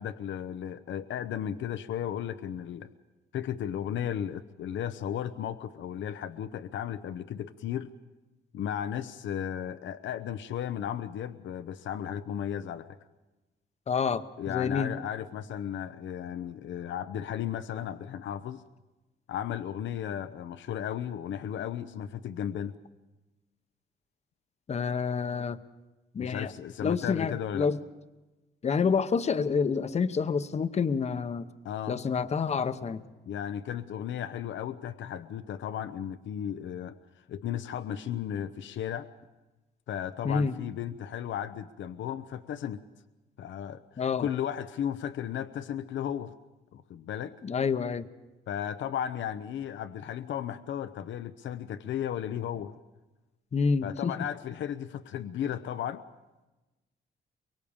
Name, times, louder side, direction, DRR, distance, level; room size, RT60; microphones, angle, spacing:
voice 1, 0.0-2.9 3.3-7.9 8.5-13.0 14.4-18.6 19.3-22.8 26.2-27.7 31.6-32.0 33.3-36.9 37.3-39.1 39.9-42.8 43.4-46.3 46.7-47.3 48.5-52.7 53.8-56.0, left 9 dB, 80° left, 12 dB, 0.8 m, -35 dB
voice 2, 13.9-14.9 24.7-25.6 26.1-26.5 26.8-27.8 28.6-31.5 31.9-33.0 40.2-40.6 44.0-44.3 47.4-48.1 53.5-54.1, left 5 dB, 35° left, 12 dB, 0.9 m, -28 dB
23.5 x 23.5 x 7.1 m, 1.1 s
cardioid pair, 140°, 19 cm